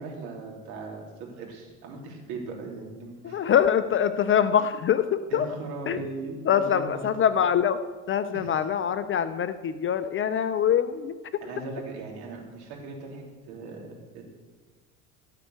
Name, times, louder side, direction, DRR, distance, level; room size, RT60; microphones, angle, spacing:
voice 1, 0.0-3.5 5.3-7.0 8.3-8.5 11.4-13.9 14.1-14.2, right 3 dB, 55° right, -1 dB, 3.6 m, -38 dB
voice 2, 3.2-5.5 5.9-6.0 6.4-7.8 8.1-11.1, left 8 dB, 30° left, 11 dB, 0.6 m, -24 dB
16.0 x 5.7 x 8.0 m, 1.4 s
hypercardioid pair, 70°, 45 cm